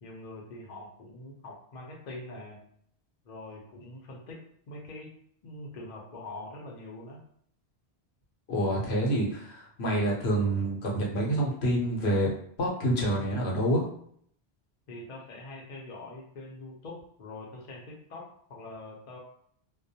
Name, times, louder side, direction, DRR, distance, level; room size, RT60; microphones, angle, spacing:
voice 1, 0.0-2.6 3.2-5.1 5.4-7.2 14.9-19.2, left 2 dB, 50° left, -2 dB, 0.7 m, -44 dB
voice 2, 8.5-12.3 12.6-13.9, right 1 dB, 75° left, -2 dB, 0.9 m, -27 dB
2.2 x 2.1 x 2.7 m, 0.64 s
omnidirectional pair, 1.1 m